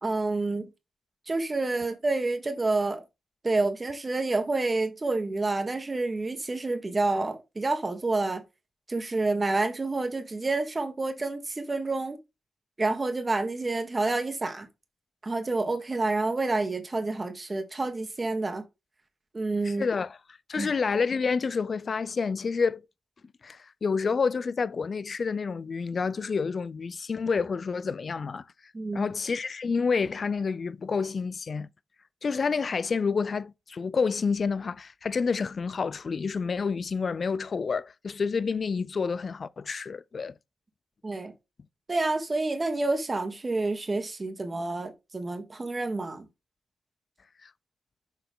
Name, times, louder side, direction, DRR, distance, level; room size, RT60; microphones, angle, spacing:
voice 1, 0.0-0.7 1.3-3.0 3.4-8.4 8.9-12.2 12.8-14.7 15.2-18.6 19.3-19.9 20.6-20.7 28.7-29.1 41.0-41.3 41.9-46.3, right 3 dB, 35° right, 1.7 m, -28 dB
voice 2, 19.6-20.2 20.5-22.8 23.4-28.4 28.9-31.7 32.2-40.3 47.4-47.5, left 5 dB, 55° left, 0.4 m, -29 dB
6.9 x 4.7 x 3.7 m
cardioid pair, 50°, 0 cm